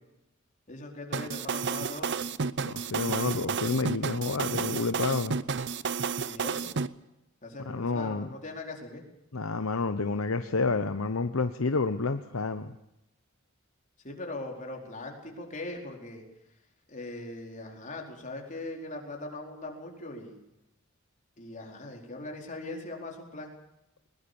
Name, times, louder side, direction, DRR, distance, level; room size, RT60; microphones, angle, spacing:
voice 1, 0.7-2.2 6.3-6.8 7.4-9.0 14.0-16.2 16.9-20.4 21.4-23.5, left 2 dB, 40° left, 1 dB, 4.7 m, -40 dB
sound 1, 1.1-6.9, right 5 dB, 60° right, 0.7 m, -31 dB
voice 2, 2.6-5.4 7.7-8.3 9.3-12.7, left 3 dB, 85° left, 9 dB, 0.9 m, -29 dB
21.0 x 20.5 x 7.1 m, 0.89 s
head